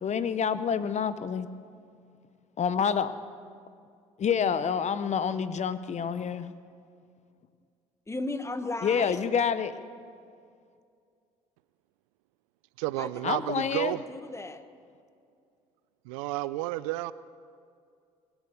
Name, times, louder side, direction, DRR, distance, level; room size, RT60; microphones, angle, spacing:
voice 1, 0.0-1.5 2.6-3.1 4.2-6.5 8.8-9.8 13.2-13.9, left 7 dB, 45° left, 13 dB, 0.8 m, -28 dB
voice 2, 8.1-9.3 13.0-14.6, left 2 dB, 15° left, 10 dB, 1.2 m, -36 dB
voice 3, 12.8-14.0 16.1-17.1, right 17 dB, 85° right, 18 dB, 0.4 m, -31 dB
21.5 x 8.1 x 6.9 m, 2.3 s
hypercardioid pair, 60°, 17 cm